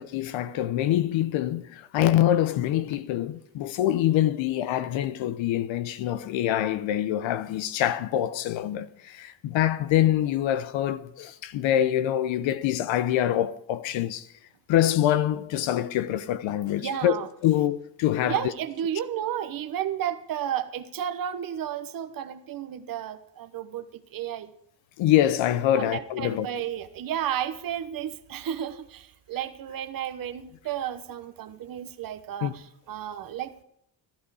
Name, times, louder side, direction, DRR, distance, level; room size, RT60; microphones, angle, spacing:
voice 1, 0.0-14.3 14.7-17.2 17.4-18.4 25.0-26.5 32.4-32.5, left 12 dB, 70° left, 0.9 m, -25 dB
voice 2, 16.6-17.3 18.2-24.5 25.8-33.6, right 10 dB, 45° right, 1.0 m, -32 dB
12.5 x 11.5 x 4.9 m
cardioid pair, 100°, 49 cm